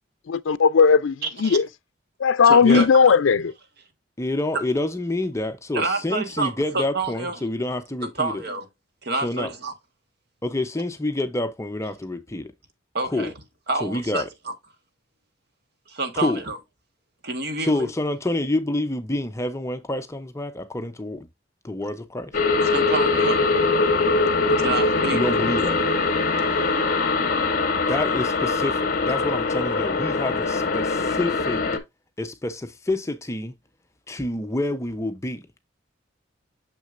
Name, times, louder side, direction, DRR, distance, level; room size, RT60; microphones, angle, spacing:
voice 1, 0.3-1.7 2.2-3.5, left 5 dB, 75° left, 0.4 m, -17 dB
voice 2, 2.4-2.9 5.7-7.4 8.0-8.7 9.0-9.7 12.9-13.3 13.7-14.2 15.9-16.6 17.2-17.9 22.6-23.5 24.5-25.2, right 3 dB, 55° right, 1.4 m, -28 dB
voice 3, 4.2-8.4 9.2-9.5 10.4-12.5 13.0-13.3 13.8-14.3 16.2-16.4 17.6-21.3 21.6-22.3 25.1-25.9 27.8-31.6 32.2-33.5 34.1-35.4, left 1 dB, 15° left, 0.6 m, -27 dB
sound 1, 22.3-31.8, left 3 dB, 45° left, 1.1 m, -22 dB
6.6 x 6.2 x 2.5 m
head